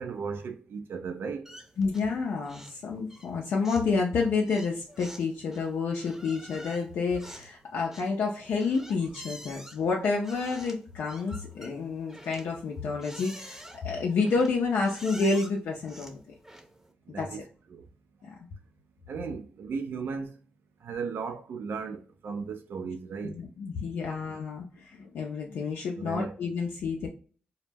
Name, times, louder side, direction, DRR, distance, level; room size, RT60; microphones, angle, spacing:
voice 1, 0.0-1.6 17.1-17.4 17.7-17.9 18.2-18.3 19.1-20.4 20.8-23.4 25.9-26.4, right 5 dB, 70° right, 0.5 m, -36 dB
sound 1, 1.4-2.2 2.4-2.8 3.1-16.9, equal, 10° right, 0.7 m, -48 dB
voice 2, 1.8-16.2 17.2-17.3 18.2-18.3 23.2-27.1, left 4 dB, 75° left, 0.4 m, -29 dB
2.1 x 2.0 x 3.3 m
supercardioid pair, 45°, 4 cm